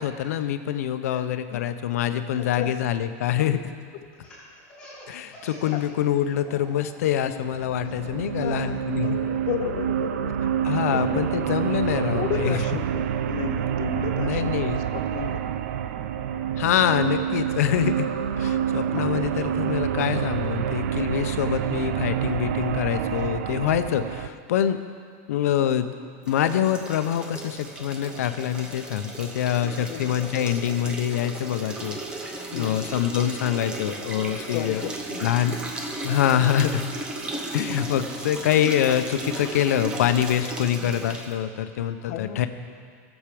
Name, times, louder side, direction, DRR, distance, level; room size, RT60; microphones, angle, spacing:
voice 1, 0.0-3.7 5.1-9.2 10.6-12.6 14.2-14.8 16.6-18.1 18.4-24.8 25.3-25.9 26.3-34.9 35.2-35.6 36.0-36.8 37.5-42.5, left 10 dB, 90° left, 9 dB, 0.8 m, -25 dB
voice 2, 2.4-2.8 5.7-5.8 7.3-7.4 7.8-8.0 8.4-10.3 10.9-11.2 11.8-15.5 17.4-17.5 25.6-25.7 29.9-30.1 32.5-32.9 34.5-35.3 42.0-42.4, left 10 dB, 40° left, 9 dB, 0.6 m, -33 dB
Laughter, 4.1-5.9 6.2-6.8 7.2-9.0, equal, 10° left, 3.9 m, -46 dB
sound 1, 7.3-24.3, right 9 dB, 80° right, 0.5 m, -27 dB
sound 2, 26.2-41.4, right 2 dB, 10° right, 0.7 m, -35 dB
17.5 x 7.3 x 5.0 m, 2.1 s
supercardioid pair, 180°, 8 cm